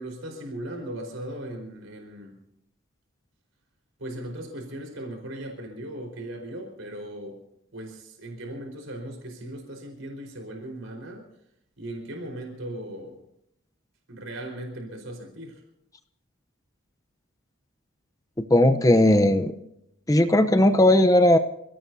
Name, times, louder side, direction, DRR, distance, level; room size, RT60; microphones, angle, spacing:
voice 1, 0.0-2.4 4.0-7.4 7.7-11.2 11.8-13.2 14.1-15.6, right 1 dB, 70° right, 2 dB, 4.5 m, -38 dB
voice 2, 18.5-19.5 20.1-21.4, left 1 dB, 15° left, 9 dB, 0.7 m, -17 dB
27.5 x 17.0 x 2.7 m, 0.77 s
head